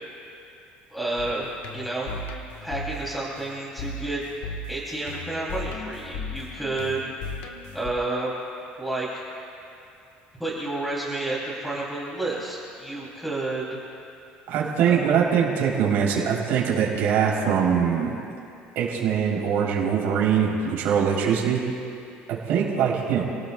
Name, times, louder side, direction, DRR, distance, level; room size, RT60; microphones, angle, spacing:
voice 1, 0.9-2.1 2.6-4.2 4.7-7.3 7.7-8.3 8.8-9.2 10.4-13.6 14.9-15.1, right 2 dB, ahead, -6 dB, 3.2 m, -30 dB
sound 1, 1.2-7.9, left 3 dB, 75° left, 1.5 m, -37 dB
voice 2, 14.5-18.2 18.8-21.6 22.3-23.2, right 7 dB, 65° right, -4 dB, 3.6 m, -22 dB
29.0 x 18.0 x 2.4 m, 2.6 s
cardioid pair, 150°, 4 cm